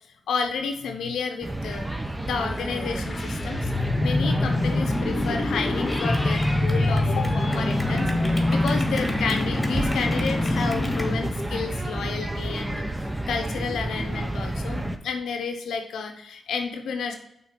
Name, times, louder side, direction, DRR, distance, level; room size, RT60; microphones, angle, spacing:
voice 1, 0.3-1.9 2.2-3.7 4.0-12.8 13.3-17.2, left 5 dB, 80° left, 5 dB, 0.7 m, -31 dB
sound 1, 1.4-15.0, right 1 dB, 15° right, 0.7 m, -30 dB
sound 2, 2.8-11.4, left 2 dB, 45° left, 0.9 m, -25 dB
Clapping / Cheering, 5.9-11.0, left 1 dB, 20° left, 1.5 m, -36 dB
5.8 x 3.8 x 5.9 m, 0.78 s
supercardioid pair, 45°, 0 cm